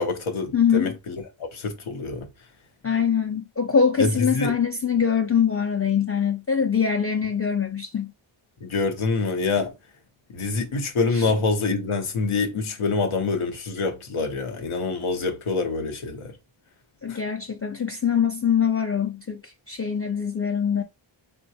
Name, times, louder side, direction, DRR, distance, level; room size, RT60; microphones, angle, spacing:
voice 1, 0.0-2.3 4.0-4.6 8.6-9.7 10.3-16.3 17.1-17.2, left 4 dB, 85° left, 0.9 m, -26 dB
voice 2, 0.5-0.9 2.8-8.1 11.2-11.3 17.0-20.8, left 7 dB, 30° left, 0.5 m, -23 dB
3.6 x 2.2 x 2.7 m
cardioid pair, 45°, 48 cm